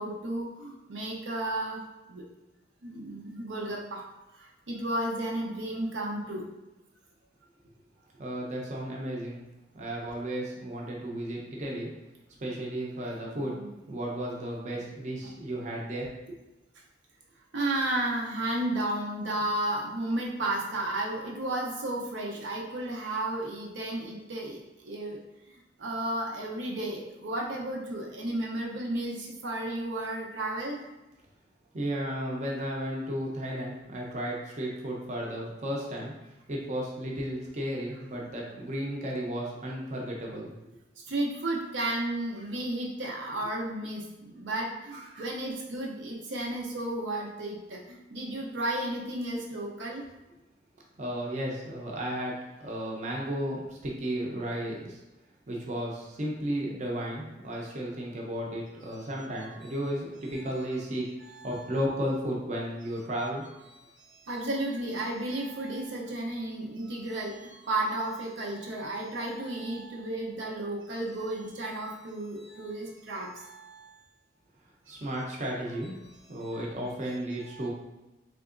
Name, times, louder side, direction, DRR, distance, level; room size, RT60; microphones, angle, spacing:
voice 1, 0.0-1.8 2.1-2.2 2.8-4.0 4.3-6.4 13.3-13.7 17.5-25.2 25.5-30.8 41.1-50.0 58.9-59.0 59.6-59.7 61.3-61.5 63.9-73.9 74.9-75.1 76.4-76.5 77.5-77.7, right 1 dB, 90° right, -2 dB, 0.6 m, -33 dB
voice 2, 8.2-9.4 9.7-11.9 12.4-13.6 13.9-16.1 31.7-36.1 36.5-40.5 51.0-55.0 55.5-61.0 61.4-63.4 74.9-75.9 76.3-77.7, equal, 40° right, -2 dB, 0.5 m, -34 dB
3.5 x 2.9 x 2.5 m, 1.0 s
head